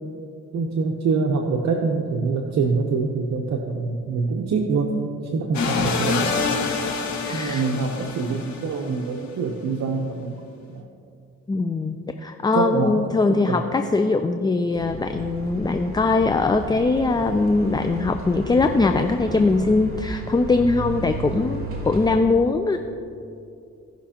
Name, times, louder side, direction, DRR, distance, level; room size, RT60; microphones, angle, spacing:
voice 1, 0.5-4.9 5.2-6.3 6.5-6.6 7.3-10.3 10.7-10.8 12.5-13.0 13.3-13.6, right 4 dB, 65° right, 1 dB, 0.9 m, -25 dB
sound 1, 5.5-9.0, left 4 dB, 65° left, 1.7 m, -26 dB
voice 2, 7.2-7.6 11.5-22.8, left 3 dB, 15° left, 7 dB, 0.4 m, -21 dB
sound 2, 14.7-22.2, right 2 dB, 45° right, 2.2 m, -34 dB
17.0 x 5.9 x 2.9 m, 2.5 s
cardioid pair, 90°, 30 cm